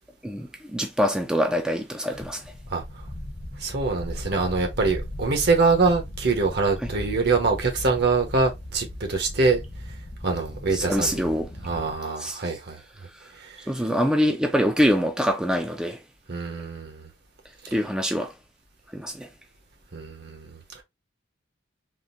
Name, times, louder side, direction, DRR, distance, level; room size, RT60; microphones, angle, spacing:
voice 1, 0.2-2.4 10.7-11.5 12.2-12.4 13.7-16.0 17.7-18.3 18.9-19.3, equal, 5° right, 0.4 m, -24 dB
sound 1, 2.1-12.0, left 1 dB, 25° left, 0.7 m, -37 dB
voice 2, 3.6-9.6 10.2-11.2 11.6-12.8 13.4-13.6 16.3-17.1 19.9-20.8, right 4 dB, 60° right, 1.1 m, -24 dB
3.7 x 2.6 x 2.5 m
head